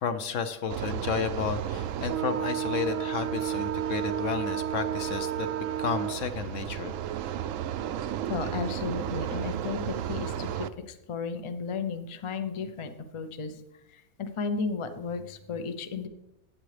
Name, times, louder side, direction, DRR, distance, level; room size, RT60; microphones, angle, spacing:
voice 1, 0.0-5.5 5.8-6.9, left 6 dB, 60° left, 9 dB, 1.1 m, -32 dB
sound 1, 0.7-10.7, right 10 dB, 70° right, 0.9 m, -32 dB
voice 2, 8.3-13.6 14.2-16.1, left 5 dB, 35° left, 8 dB, 0.5 m, -34 dB
15.0 x 9.1 x 3.3 m, 0.89 s
omnidirectional pair, 1.6 m